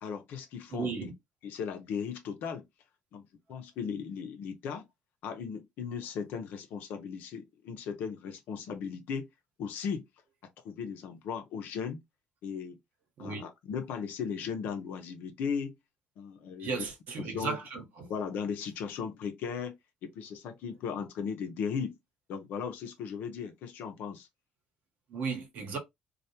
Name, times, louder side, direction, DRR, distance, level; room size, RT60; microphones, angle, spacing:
voice 1, 0.0-0.9 1.4-2.7 3.1-4.9 5.2-9.3 9.6-10.1 10.6-12.0 12.4-12.8 13.2-15.8 16.2-16.9 17.2-17.6 18.1-19.8 20.0-22.0 22.3-24.3, left 6 dB, 70° left, 0.6 m, -37 dB
voice 2, 0.7-1.1 13.2-13.4 16.6-18.1 25.1-25.8, right 5 dB, 65° right, 1.0 m, -35 dB
2.3 x 2.1 x 2.8 m
supercardioid pair, 65°, 3 cm